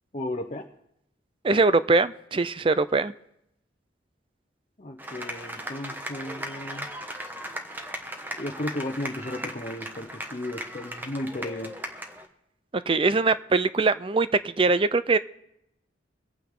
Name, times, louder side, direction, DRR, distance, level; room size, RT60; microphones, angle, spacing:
voice 1, 0.1-0.7 4.8-6.9 8.4-11.7, left 1 dB, 40° left, 1 dB, 0.9 m, -34 dB
voice 2, 1.4-3.1 12.9-15.2, right 3 dB, 30° right, 15 dB, 0.4 m, -22 dB
sound 1, 5.0-12.3, equal, 10° right, 1.2 m, -37 dB
23.5 x 9.0 x 3.7 m, 0.79 s
head